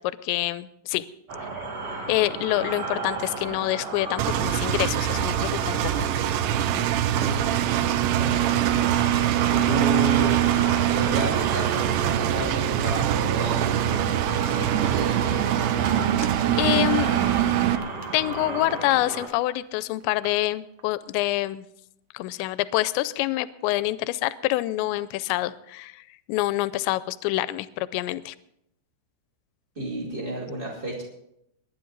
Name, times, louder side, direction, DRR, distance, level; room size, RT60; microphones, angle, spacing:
voice 1, 0.2-1.1 2.1-6.1 16.2-16.3 16.6-17.1 18.1-21.7 22.1-28.4, left 16 dB, 80° left, 15 dB, 2.7 m, -26 dB
sound 1, 1.3-19.3, right 3 dB, 50° right, 2.0 m, -34 dB
Engine, 4.2-17.8, right 11 dB, 85° right, 2.4 m, -23 dB
sound 2, 6.5-20.5 20.8-20.9, right 7 dB, 70° right, 2.4 m, -44 dB
voice 2, 7.2-10.4 10.9-15.4 29.7-31.0, right 1 dB, 25° right, -4 dB, 1.1 m, -33 dB
22.5 x 10.0 x 4.0 m, 0.77 s
omnidirectional pair, 5.5 m